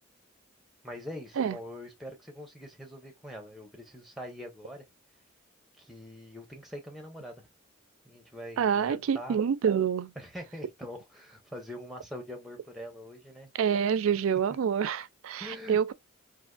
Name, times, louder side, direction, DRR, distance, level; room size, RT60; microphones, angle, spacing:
voice 1, 0.8-4.8 5.8-7.4 8.0-9.4 10.2-13.5 14.5-14.6 15.4-15.8, equal, ahead, 0.7 m, -43 dB
voice 2, 8.6-10.1 13.5-15.9, right 7 dB, 90° right, 0.4 m, -27 dB
3.4 x 2.5 x 2.3 m
head